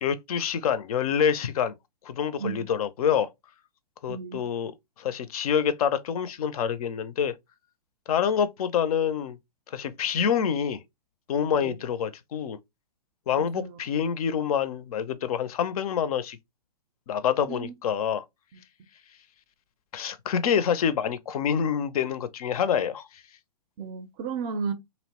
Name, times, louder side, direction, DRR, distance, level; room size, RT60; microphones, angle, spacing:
voice 1, 0.0-1.7 2.0-3.3 4.0-4.7 5.0-7.3 8.1-9.4 9.7-10.8 11.3-12.6 13.3-16.4 17.1-18.2 19.9-23.1, left 8 dB, 60° left, 0.4 m, -26 dB
voice 2, 4.1-4.4 11.5-11.8 13.4-13.8 17.5-17.7 23.8-24.7, right 6 dB, 30° right, 0.4 m, -33 dB
2.7 x 2.0 x 2.8 m
hypercardioid pair, 125°, 21 cm